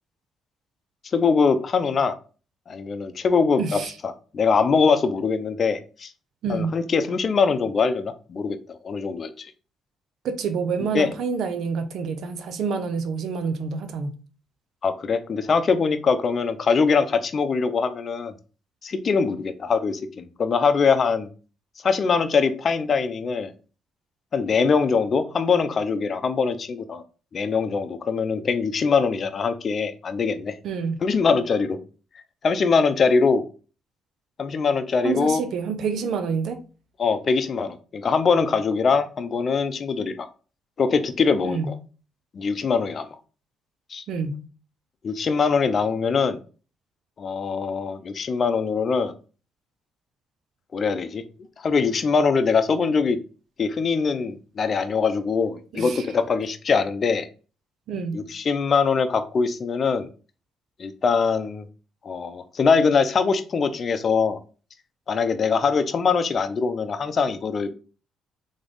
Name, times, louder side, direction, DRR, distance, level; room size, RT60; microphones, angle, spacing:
voice 1, 1.1-2.1 2.7-6.1 6.5-9.3 10.9-11.1 14.8-18.3 18.8-21.3 21.8-23.5 24.3-27.0 27.3-30.5 31.0-31.8 32.4-33.4 34.4-35.4 37.0-40.3 40.8-41.6 42.3-43.1 43.9-44.0 45.0-46.4 47.2-49.1 50.7-51.2 51.6-53.2 53.6-57.3 58.1-60.1 60.8-61.6 62.0-64.4 65.1-67.7, left 5 dB, 45° left, 0.6 m, -22 dB
voice 2, 3.6-3.9 6.4-6.8 10.2-14.1 30.6-31.0 35.0-36.6 41.4-41.7 44.1-44.4 55.7-56.1 57.9-58.2, right 5 dB, 70° right, 0.7 m, -27 dB
3.5 x 3.4 x 3.9 m
cardioid pair, 90°, 0 cm